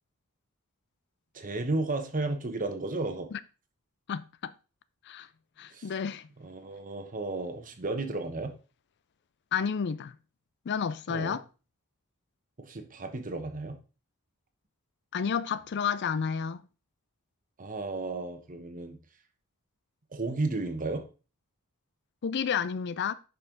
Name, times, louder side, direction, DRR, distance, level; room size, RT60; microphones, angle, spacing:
voice 1, 1.3-3.3 5.7-5.9 6.4-8.5 11.1-11.4 12.6-13.8 17.6-19.0 20.1-21.0, right 2 dB, 35° right, 1.1 m, -33 dB
voice 2, 4.1-4.5 5.1-5.3 5.6-6.3 9.5-10.1 10.7-11.4 15.1-16.6 22.2-23.1, left 7 dB, 50° left, 0.4 m, -31 dB
10.5 x 5.5 x 3.9 m
head